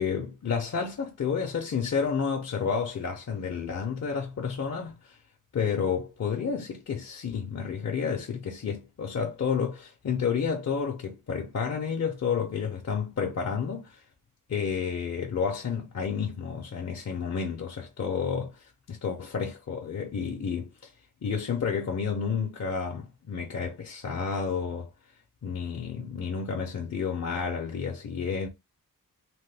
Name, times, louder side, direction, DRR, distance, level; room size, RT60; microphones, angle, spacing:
voice 1, 0.0-5.2 5.5-14.0 14.5-20.7 21.2-24.9 25.4-28.5, left 6 dB, 50° left, 0.5 m, -30 dB
3.0 x 2.1 x 3.2 m
wide cardioid pair, 155°, 35 cm